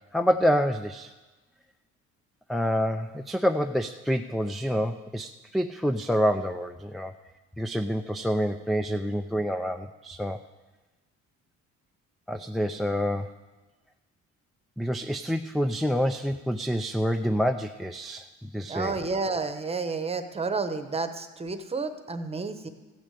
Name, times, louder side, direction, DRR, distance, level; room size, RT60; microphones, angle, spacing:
voice 1, 0.1-1.1 2.5-7.1 7.6-10.4 12.3-13.3 14.8-18.9, equal, ahead, 8 dB, 0.3 m, -27 dB
voice 2, 18.7-22.7, right 4 dB, 20° right, 8 dB, 1.0 m, -30 dB
14.5 x 6.2 x 8.4 m, 1.2 s
cardioid pair, 110°, 29 cm